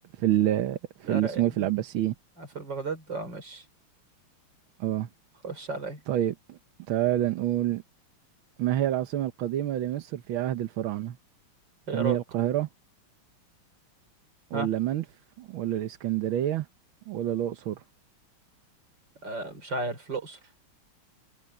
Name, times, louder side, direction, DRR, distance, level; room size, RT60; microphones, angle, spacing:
voice 1, 0.1-2.1 4.8-5.1 6.1-6.6 6.9-7.8 8.6-11.2 11.9-12.7 14.5-15.0 15.4-16.7 17.1-17.8, right 12 dB, 70° right, 1.7 m, -27 dB
voice 2, 1.0-1.7 2.4-3.6 5.4-6.0 11.9-12.2 14.5-14.7 19.2-20.4, right 3 dB, 55° right, 5.2 m, -34 dB
omnidirectional pair, 2.4 m